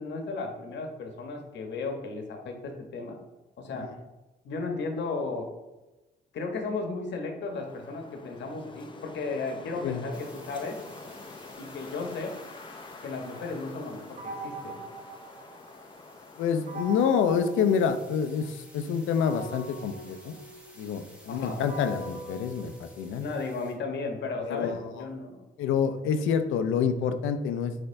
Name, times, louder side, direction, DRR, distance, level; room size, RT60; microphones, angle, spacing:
voice 1, 0.0-3.2 3.6-3.9 4.4-5.5 6.3-10.8 11.6-12.4 13.0-14.8 21.3-21.6 23.2-25.4, left 3 dB, 65° left, 3 dB, 0.9 m, -35 dB
Wind, 7.4-17.3, left 3 dB, 25° left, 0.5 m, -47 dB
sound 1, 10.1-23.7, equal, 5° right, 1.1 m, -55 dB
sound 2, 14.2-16.0 16.7-18.5 19.2-23.4, right 2 dB, 60° right, 1.2 m, -42 dB
voice 2, 16.4-20.4 20.8-23.3 24.4-24.9 25.6-27.7, left 7 dB, 85° left, 9 dB, 0.5 m, -27 dB
4.3 x 4.3 x 2.6 m, 1.1 s
cardioid pair, 90°, 20 cm